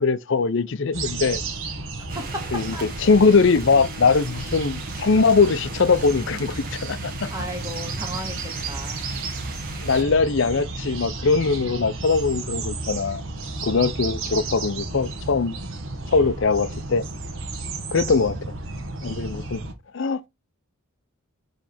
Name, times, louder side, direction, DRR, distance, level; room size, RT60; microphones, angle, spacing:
voice 1, 0.0-1.4 2.5-7.3 9.8-13.2 13.6-15.6 16.1-17.0 17.9-18.4 19.0-19.6 19.9-20.3, left 4 dB, 55° left, 0.5 m, -21 dB
sound 1, 0.9-19.7, right 3 dB, 60° right, 1.2 m, -32 dB
voice 2, 2.1-2.8 7.3-9.0, equal, 15° right, 1.4 m, -34 dB
sound 2, 2.1-10.0, right 4 dB, 40° right, 1.3 m, -39 dB
7.3 x 3.3 x 4.2 m
head